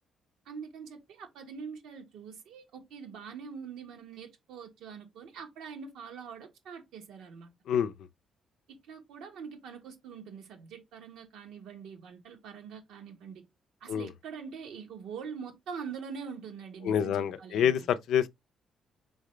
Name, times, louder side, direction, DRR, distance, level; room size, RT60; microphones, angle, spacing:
voice 1, 0.4-7.5 8.7-13.4 13.8-17.9, right 6 dB, 85° right, 1.4 m, -44 dB
voice 2, 16.8-18.3, left 9 dB, 80° left, 0.5 m, -27 dB
3.9 x 3.8 x 3.2 m
cardioid pair, 90°, 0 cm